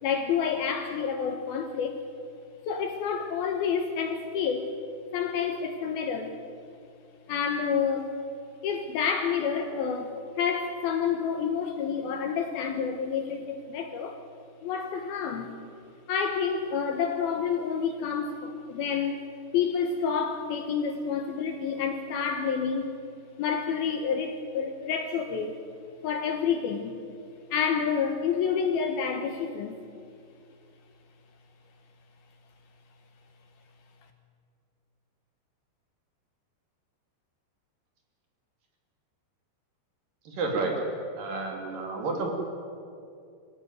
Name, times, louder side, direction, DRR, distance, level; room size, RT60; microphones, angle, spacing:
voice 1, 0.0-2.0 2.7-4.7 5.1-6.3 7.3-8.1 8.6-14.2 14.6-15.5 16.1-19.2 19.5-22.9 23.4-25.6 26.0-27.0 27.5-29.8, left 6 dB, 70° left, 6 dB, 2.7 m, -29 dB
voice 2, 40.3-40.8 41.2-42.3, right 3 dB, 55° right, 1 dB, 4.1 m, -30 dB
24.5 x 15.5 x 9.4 m, 2.4 s
omnidirectional pair, 5.2 m